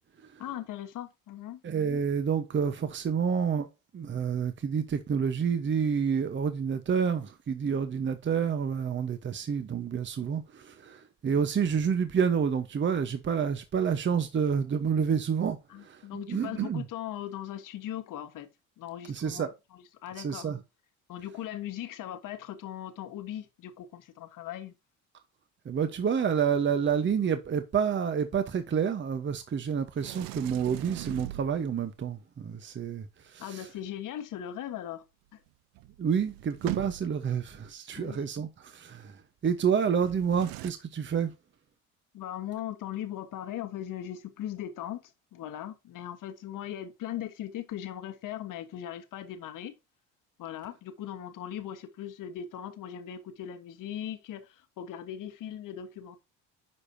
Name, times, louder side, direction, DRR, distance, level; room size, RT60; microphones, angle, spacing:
voice 1, 0.4-1.6 15.7-18.5 18.8-19.4 20.0-20.5 21.1-24.7 33.4-35.0 35.3-35.4 38.0-38.2 42.1-49.7 50.4-56.2, left 11 dB, 55° left, 1.4 m, -39 dB
voice 2, 1.6-3.7 3.9-16.8 19.1-19.5 20.2-20.6 25.6-33.7 36.0-41.3, right 7 dB, 30° right, 1.0 m, -29 dB
Sliding door, 30.0-31.9 35.5-35.6 35.7-37.3 39.9-40.7, right 17 dB, 65° right, 0.6 m, -40 dB
9.7 x 5.0 x 2.7 m
supercardioid pair, 75°, 37 cm